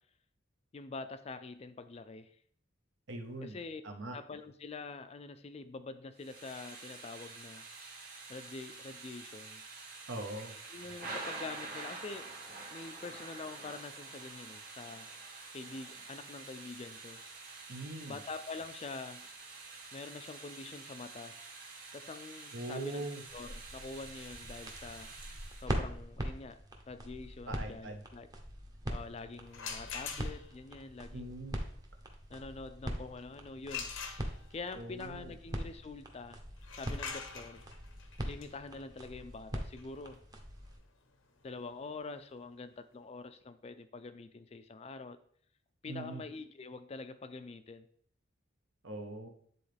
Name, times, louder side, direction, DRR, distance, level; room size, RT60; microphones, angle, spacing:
voice 1, 0.7-2.3 3.4-3.8 4.1-7.6 8.3-9.6 10.7-12.3 12.7-15.1 15.5-17.2 17.7-17.8 18.1-19.3 19.9-21.4 21.9-23.1 23.3-25.1 25.6-26.6 26.9-28.3 28.9-31.4 32.3-33.9 34.5-36.4 36.7-37.6 38.2-40.2 41.4-45.2 45.8-47.9, left 3 dB, 30° left, 11 dB, 0.4 m, -45 dB
voice 2, 3.1-3.6 3.8-4.2 10.1-10.6 17.7-18.2 22.5-23.2 27.5-28.0 31.1-31.6 34.7-35.3 45.8-46.2 48.8-49.3, right 2 dB, 70° right, 5 dB, 1.0 m, -41 dB
Thunder / Rain, 6.2-25.7, right 3 dB, 50° right, 1.6 m, -48 dB
sound 1, 23.3-40.8, equal, 20° right, 0.8 m, -42 dB
sound 2, 29.5-30.7 33.7-34.7 36.6-42.2, left 6 dB, 85° left, 0.9 m, -45 dB
9.4 x 3.9 x 3.3 m, 0.62 s
head